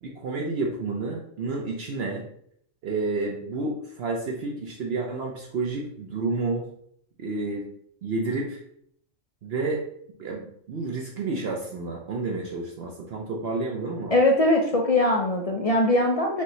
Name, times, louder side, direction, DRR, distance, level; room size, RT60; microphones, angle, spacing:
voice 1, 0.0-2.2 2.8-6.7 7.2-7.6 8.0-8.6 9.4-9.8 10.2-14.1, right 3 dB, 60° right, -1 dB, 0.8 m, -30 dB
voice 2, 14.1-16.4, left 1 dB, 55° left, 0 dB, 0.4 m, -21 dB
5.3 x 2.8 x 3.1 m, 0.67 s
omnidirectional pair, 1.2 m